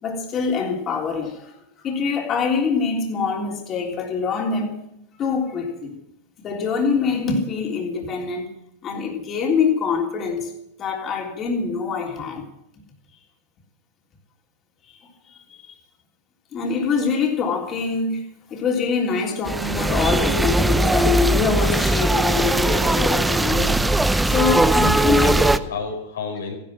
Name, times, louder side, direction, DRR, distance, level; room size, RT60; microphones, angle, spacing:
voice 1, 0.0-4.7 5.2-5.9 6.4-8.5 8.8-10.5 10.8-12.4 14.8-15.0 16.5-23.7 24.2-25.3, left 5 dB, 35° left, 3.5 m, -24 dB
sound 1, 19.5-25.6, right 2 dB, 5° right, 0.7 m, -19 dB
voice 2, 24.6-26.5, left 4 dB, 90° left, 5.0 m, -31 dB
15.0 x 12.0 x 7.5 m
hypercardioid pair, 110°, 0 cm